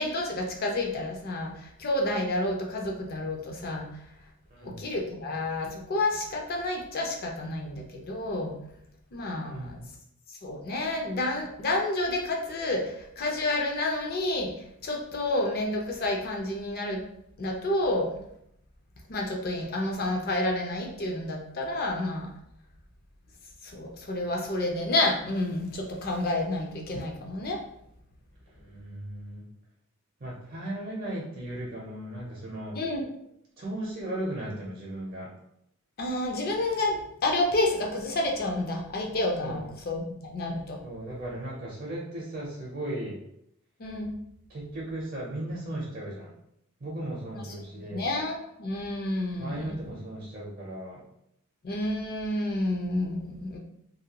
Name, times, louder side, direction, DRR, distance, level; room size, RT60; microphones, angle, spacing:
voice 1, 0.0-3.9 4.6-8.6 9.1-9.8 10.4-14.5 14.8-17.0 17.4-18.1 19.1-22.3 23.6-27.6 32.8-33.0 36.0-40.8 43.8-44.1 47.4-47.5 47.9-49.8 51.6-53.6, left 2 dB, 45° left, 1 dB, 0.5 m, -29 dB
voice 2, 4.5-4.9 9.5-9.9 28.5-29.5 30.2-32.8 33.6-35.3 39.4-39.6 40.8-43.2 44.5-46.3 46.8-48.1 49.4-51.0, right 1 dB, 45° right, -4 dB, 0.5 m, -36 dB
2.7 x 2.2 x 2.8 m, 0.75 s
head